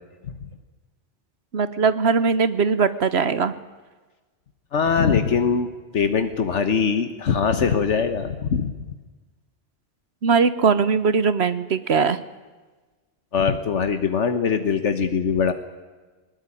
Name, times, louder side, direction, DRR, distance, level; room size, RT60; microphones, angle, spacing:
voice 1, 1.5-3.5 10.2-12.2, right 5 dB, 65° right, 14 dB, 1.2 m, -20 dB
voice 2, 4.7-5.7 5.9-8.7 13.3-15.5, left 6 dB, 80° left, 9 dB, 1.5 m, -22 dB
20.0 x 20.0 x 9.9 m, 1.3 s
omnidirectional pair, 1.2 m